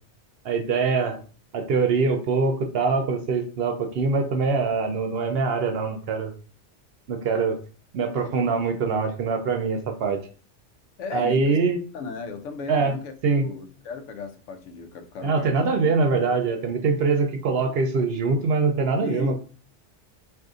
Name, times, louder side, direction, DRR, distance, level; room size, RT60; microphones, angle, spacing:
voice 1, 0.4-1.2 1.5-6.3 7.1-7.6 7.9-10.2 11.1-11.8 12.7-12.9 13.2-13.5 15.2-19.4, right 4 dB, 65° right, 5 dB, 0.7 m, -23 dB
voice 2, 11.0-11.6 11.9-15.7 19.0-19.4, left 4 dB, 90° left, 6 dB, 1.0 m, -36 dB
2.6 x 2.6 x 3.6 m, 0.39 s
omnidirectional pair, 1.2 m